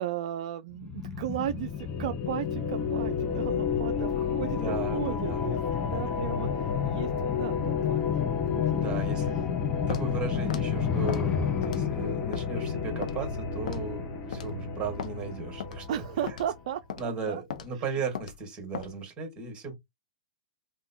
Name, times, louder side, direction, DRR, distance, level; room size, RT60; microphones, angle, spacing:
voice 1, 0.0-9.0 10.3-10.6 15.9-17.4 17.8-17.9, right 11 dB, 60° right, 0.3 m, -36 dB
sound 1, 0.7-14.0 14.3-14.4, left 8 dB, 20° left, 0.6 m, -33 dB
sound 2, 1.3-16.7, left 6 dB, 40° left, 1.1 m, -32 dB
voice 2, 4.3-5.5 8.7-9.4 9.9-16.0 17.0-19.7, right 4 dB, 25° right, 1.9 m, -36 dB
Walk footsteps, 9.9-10.1 10.5-10.7 11.1-11.3 11.6-11.9 12.3-12.5 13.0-13.2 13.7-13.9 14.3-14.5 15.0-15.1 15.6-15.8 16.3-16.5 16.9-17.1 17.5-17.7 18.2-18.4 18.7-18.9, left 8 dB, 70° left, 0.6 m, -37 dB
3.6 x 2.2 x 2.7 m
hypercardioid pair, 115°, 4 cm